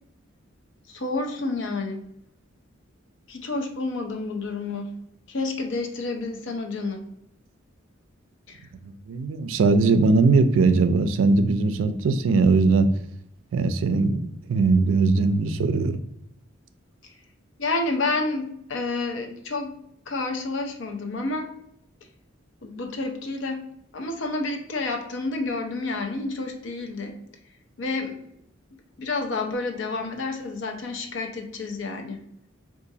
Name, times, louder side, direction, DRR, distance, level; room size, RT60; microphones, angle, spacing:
voice 1, 0.9-2.0 3.3-4.9 5.3-7.0 8.5-8.6 17.6-19.8 20.1-21.5 22.6-23.6 23.9-27.2 27.8-28.2 29.0-32.2, left 3 dB, 65° left, 4 dB, 0.5 m, -29 dB
voice 2, 8.8-12.9 13.5-16.0, right 3 dB, 80° right, 10 dB, 0.3 m, -20 dB
3.9 x 2.4 x 2.6 m, 0.74 s
head